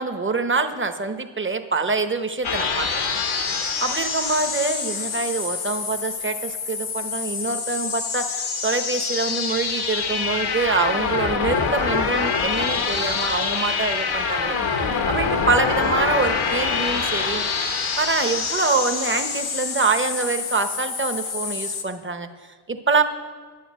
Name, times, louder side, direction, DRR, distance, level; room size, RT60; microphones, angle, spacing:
voice 1, 0.0-2.9 3.8-14.6 15.1-17.4 18.0-23.0, right 4 dB, 25° right, 8 dB, 1.0 m, -25 dB
sound 1, 2.4-21.8, left 5 dB, 85° left, 1.3 m, -26 dB
10.5 x 9.7 x 7.6 m, 1.5 s
wide cardioid pair, 75°, 48 cm